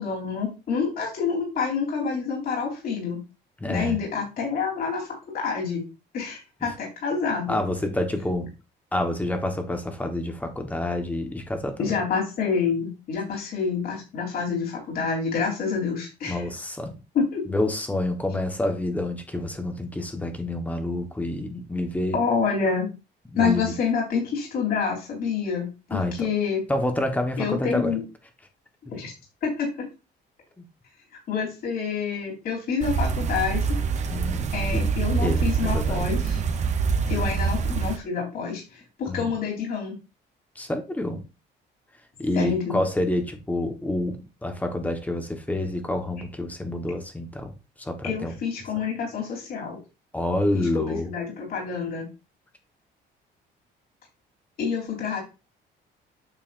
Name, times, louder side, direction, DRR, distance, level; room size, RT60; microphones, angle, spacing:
voice 1, 0.0-3.2 3.7-5.8 6.1-7.6 11.8-16.4 17.1-17.4 22.1-22.9 23.4-26.6 27.4-28.0 28.9-29.1 29.4-29.9 31.3-33.7 34.5-36.4 37.1-40.0 42.3-42.8 48.0-49.8 50.5-52.1 54.6-55.2, left 5 dB, 55° left, -2 dB, 3.6 m, -27 dB
voice 2, 3.6-4.0 6.6-6.7 7.5-8.5 8.9-12.0 16.2-17.0 17.5-22.2 23.3-23.7 25.9-26.3 26.7-27.9 30.6-30.7 34.1-34.8 35.2-36.1 37.2-37.4 39.1-39.3 40.5-41.2 42.2-48.3 50.1-51.1, left 1 dB, 10° left, 5 dB, 1.3 m, -28 dB
sound 1, 32.8-38.0, right 5 dB, 40° right, 0.8 m, -25 dB
9.0 x 6.7 x 2.6 m, 0.29 s
cardioid pair, 160°, 19 cm